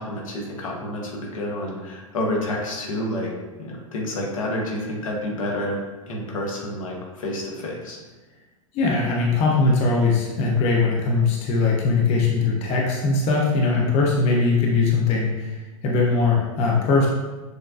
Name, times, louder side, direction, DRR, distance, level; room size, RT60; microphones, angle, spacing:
voice 1, 0.0-3.3 3.6-5.8 6.1-8.0, left 1 dB, 70° left, -1 dB, 0.9 m, -29 dB
voice 2, 8.7-15.6 15.8-17.1, left 3 dB, 35° left, -2 dB, 0.7 m, -20 dB
6.3 x 2.2 x 2.4 m, 1.2 s
hypercardioid pair, 100°, 18 cm